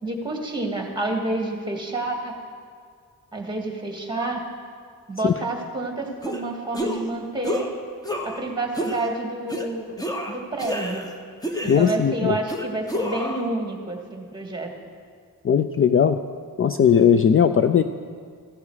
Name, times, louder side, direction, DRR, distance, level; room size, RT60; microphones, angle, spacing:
voice 1, 0.0-2.4 3.3-4.4 5.1-7.7 8.2-10.0 10.3-11.0 11.6-14.7, right 2 dB, 15° right, 2 dB, 1.9 m, -29 dB
sound 1, 6.2-6.4 6.7-7.1 7.4-7.7 8.0-8.4 8.7-9.0 9.5-9.7 10.0-11.1 11.4-12.0 12.5-13.4, equal, 10° left, 1.1 m, -29 dB
voice 2, 11.7-12.4 15.4-16.2 16.6-17.8, left 7 dB, 40° left, 9 dB, 0.4 m, -18 dB
15.5 x 12.5 x 4.9 m, 2.1 s
wide cardioid pair, 130°, 35 cm